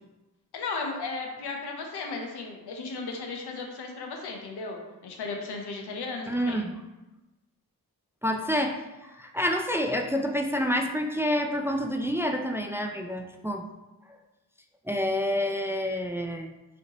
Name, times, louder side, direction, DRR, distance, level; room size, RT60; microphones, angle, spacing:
voice 1, 0.5-6.6, left 3 dB, 90° left, 2 dB, 0.7 m, -35 dB
voice 2, 6.3-6.7 8.2-13.6 14.9-16.5, equal, 5° right, 4 dB, 0.3 m, -28 dB
4.3 x 2.9 x 2.9 m, 1.1 s
cardioid pair, 50°, 38 cm